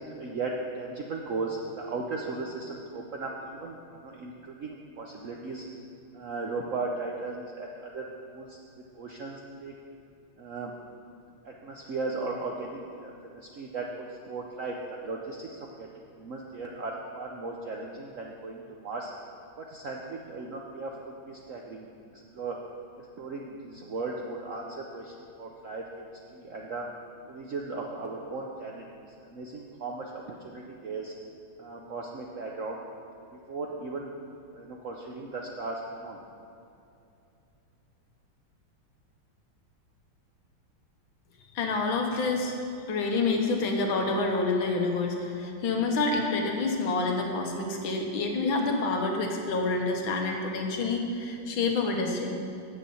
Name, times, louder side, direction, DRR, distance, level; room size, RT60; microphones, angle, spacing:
voice 1, 0.0-5.7 6.1-8.6 8.9-9.7 10.4-10.7 11.4-15.9 16.2-19.1 19.6-21.9 22.1-22.6 23.0-26.9 27.3-28.8 29.3-31.2 31.6-32.8 33.3-34.1 34.5-36.2, right 3 dB, 85° right, -1 dB, 0.6 m, -37 dB
voice 2, 41.6-42.5 42.9-52.3, left 3 dB, 70° left, 2 dB, 1.8 m, -28 dB
7.6 x 6.9 x 7.0 m, 2.7 s
omnidirectional pair, 2.3 m